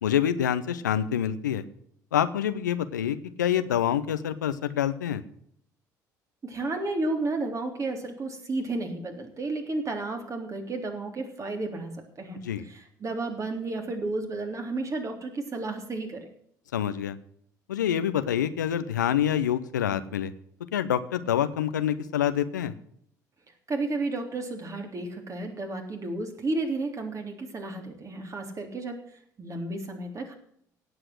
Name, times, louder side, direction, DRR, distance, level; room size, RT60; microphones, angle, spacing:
voice 1, 0.0-1.6 2.1-5.2 12.4-12.6 16.7-17.2 17.7-20.3 20.7-22.7, left 10 dB, 80° left, 12 dB, 0.7 m, -26 dB
voice 2, 6.4-16.3 23.7-29.0 29.4-30.4, right 2 dB, 35° right, 4 dB, 3.5 m, -32 dB
17.5 x 7.9 x 6.2 m, 0.67 s
figure-of-eight pair, 55°, 10 cm